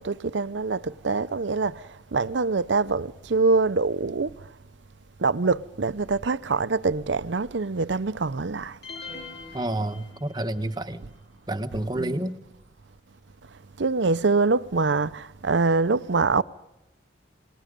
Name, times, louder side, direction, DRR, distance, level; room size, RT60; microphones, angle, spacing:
voice 1, 0.0-4.5 5.2-8.8 11.0-11.1 11.7-12.3 13.8-16.4, right 4 dB, 80° right, 0.7 m, -25 dB
sound 1, 8.8-10.6, left 4 dB, 60° left, 4.5 m, -42 dB
voice 2, 9.5-11.0 11.5-12.4, right 1 dB, 20° right, 1.1 m, -29 dB
28.5 x 19.5 x 5.2 m
head